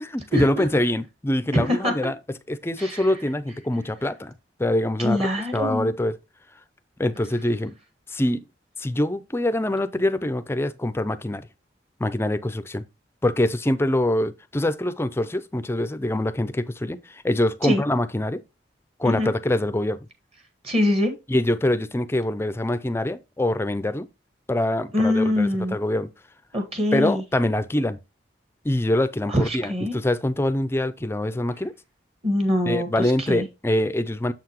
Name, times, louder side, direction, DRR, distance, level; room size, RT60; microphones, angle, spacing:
voice 1, 0.0-2.1 2.5-4.3 4.6-6.2 7.0-7.8 8.1-8.4 8.8-11.5 12.0-12.8 13.2-18.4 19.0-20.0 21.3-24.1 24.5-26.1 26.9-28.0 28.6-31.7 32.7-34.3, left 1 dB, 15° left, 0.5 m, -24 dB
voice 2, 1.5-1.9 2.8-3.1 5.0-5.9 17.6-17.8 19.0-19.3 20.6-21.1 24.9-25.8 26.5-27.2 29.3-30.0 32.2-33.5, left 1 dB, 35° right, 1.5 m, -23 dB
7.2 x 5.8 x 3.0 m
head